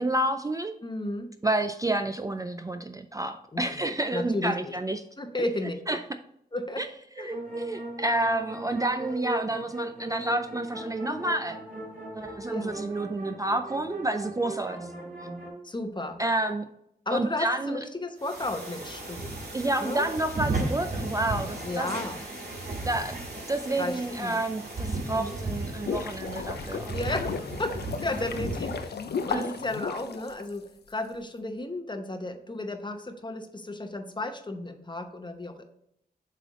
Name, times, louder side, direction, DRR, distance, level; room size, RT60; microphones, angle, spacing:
voice 1, 0.0-0.8 1.4-5.0 5.4-5.5 5.9-6.0 6.8-6.9 7.2-11.6 12.1-14.9 16.2-16.7 17.1-17.8 19.5-21.9 22.8-23.2 23.5-27.0 29.3-29.5, right 2 dB, 20° right, 7 dB, 0.3 m, -29 dB
voice 2, 0.8-1.3 3.5-4.7 5.2-5.8 6.5-6.8 7.2-7.3 11.1-11.3 12.2-12.8 15.6-16.2 17.1-19.3 19.8-20.1 21.6-22.2 23.8-24.4 25.0-25.4 26.9-35.6, left 2 dB, 30° left, 6 dB, 0.8 m, -34 dB
sound 1, 7.3-15.5, right 2 dB, 60° right, 2.3 m, -38 dB
sound 2, 18.2-28.9, right 2 dB, 90° right, 2.0 m, -35 dB
sound 3, 25.5-30.9, left 5 dB, 85° left, 0.5 m, -34 dB
7.5 x 3.4 x 3.7 m, 0.75 s
wide cardioid pair, 80°, 17 cm